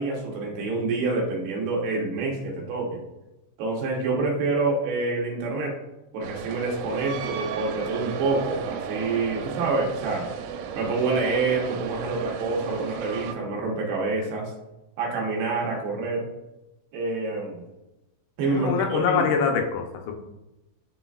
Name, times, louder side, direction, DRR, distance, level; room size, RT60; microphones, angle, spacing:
voice 1, 0.0-3.0 3.6-5.7 6.1-10.3 10.8-14.5 15.0-16.3 16.9-17.6 18.4-19.3, right 3 dB, 75° right, -1 dB, 2.5 m, -27 dB
sound 1, 6.2-13.4, right 7 dB, 90° right, 3.0 m, -34 dB
voice 2, 18.4-20.2, left 6 dB, 80° left, 3 dB, 3.1 m, -24 dB
10.0 x 3.9 x 2.4 m, 0.96 s
omnidirectional pair, 5.5 m